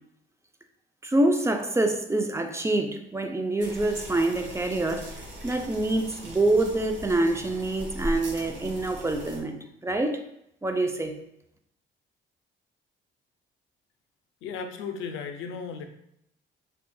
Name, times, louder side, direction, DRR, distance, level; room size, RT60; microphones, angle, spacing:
voice 1, 1.0-5.1 5.4-10.2 10.6-11.1, right 2 dB, 15° right, 0.3 m, -26 dB
sound 1, 3.6-9.4, right 1 dB, 65° right, 1.0 m, -39 dB
voice 2, 14.4-15.9, left 5 dB, 85° left, 0.4 m, -35 dB
3.7 x 2.4 x 2.2 m
cardioid pair, 90°, 20 cm